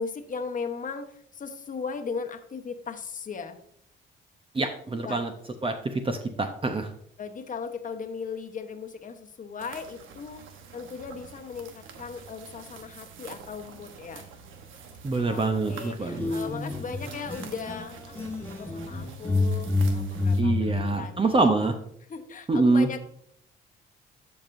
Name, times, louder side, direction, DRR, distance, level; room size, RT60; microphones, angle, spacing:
voice 1, 0.0-3.6 5.0-5.2 7.2-10.4 10.7-14.3 15.2-21.5 22.1-23.1, left 5 dB, 40° left, 6 dB, 1.1 m, -37 dB
voice 2, 4.5-5.3 5.6-6.9 15.0-16.3 20.4-21.7 22.5-22.9, right 3 dB, 25° right, 5 dB, 0.7 m, -25 dB
sound 1, 9.6-20.4, right 6 dB, 80° right, 1.1 m, -47 dB
sound 2, 16.1-17.9 18.2-21.0, left 3 dB, 10° left, 1.4 m, -28 dB
13.5 x 5.2 x 2.6 m, 0.67 s
cardioid pair, 90°, 20 cm